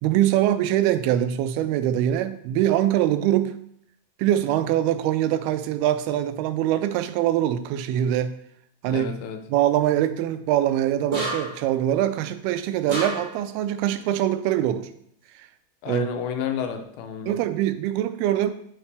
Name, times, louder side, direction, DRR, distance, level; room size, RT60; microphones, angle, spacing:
voice 1, 0.0-3.6 4.2-8.4 8.8-9.2 9.5-14.9 15.4-15.5 15.9-16.1 17.3-18.5, right 12 dB, 90° right, 11 dB, 2.5 m, -23 dB
voice 2, 8.9-9.4 15.8-17.4, left 8 dB, 80° left, 6 dB, 2.6 m, -31 dB
sound 1, 11.1-11.7 12.9-13.5, right 2 dB, 25° right, 2.5 m, -29 dB
7.9 x 5.8 x 3.4 m, 0.69 s
omnidirectional pair, 4.4 m